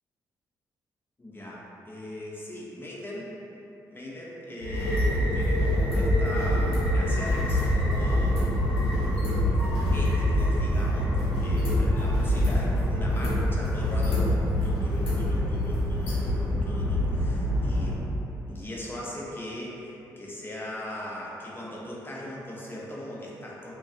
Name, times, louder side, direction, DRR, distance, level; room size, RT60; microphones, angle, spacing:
voice 1, 1.2-3.3 3.9-9.2 9.6-18.0 18.5-23.7, left 1 dB, 20° left, -5 dB, 0.6 m, -39 dB
sound 1, 4.6-17.9, left 1 dB, 65° left, 0.8 m, -25 dB
2.3 x 2.3 x 2.4 m, 2.9 s
hypercardioid pair, 40°, 10 cm